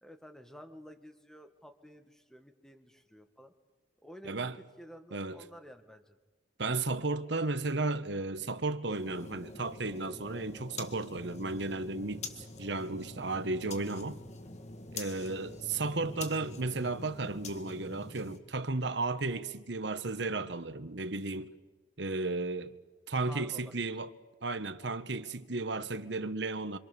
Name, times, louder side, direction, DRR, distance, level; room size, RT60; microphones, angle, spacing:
voice 1, 0.0-3.5 4.0-6.2 23.2-23.9, equal, 5° left, 1.9 m, -52 dB
voice 2, 4.2-4.6 5.1-5.4 6.6-12.3 12.6-14.2 14.9-21.5 22.0-22.7 23.1-24.1 24.4-26.8, right 3 dB, 65° right, 1.3 m, -34 dB
sound 1, 8.9-18.4, left 3 dB, 35° left, 2.1 m, -46 dB
26.5 x 26.5 x 7.0 m
head